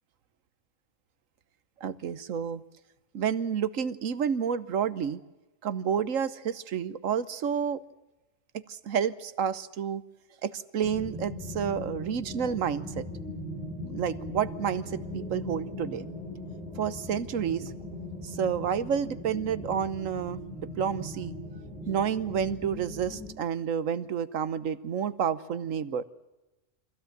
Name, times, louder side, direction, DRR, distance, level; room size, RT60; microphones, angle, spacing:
voice 1, 1.8-2.6 3.1-5.2 5.6-7.8 8.5-10.0 10.4-13.0 13.8-16.1 16.8-17.7 18.2-20.4 20.8-21.3 21.9-26.0, right 8 dB, 85° right, 15 dB, 1.4 m, -30 dB
sound 1, 10.8-23.3, left 1 dB, 5° right, 5.8 m, -40 dB
25.0 x 16.0 x 9.0 m, 1.1 s
omnidirectional pair, 1.3 m